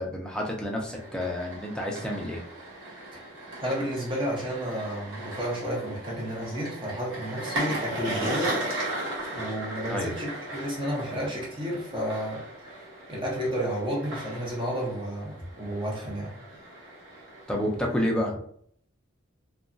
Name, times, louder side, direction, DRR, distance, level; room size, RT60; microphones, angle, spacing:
voice 1, 0.0-2.4 9.9-10.1 17.5-18.3, left 1 dB, 5° left, -1 dB, 0.5 m, -29 dB
sound 1, 0.9-17.8, right 1 dB, 90° right, 1.0 m, -37 dB
voice 2, 3.6-8.5 8.9-12.8 13.1-16.3, equal, 25° right, -4 dB, 0.7 m, -32 dB
2.8 x 2.3 x 2.5 m, 0.63 s
head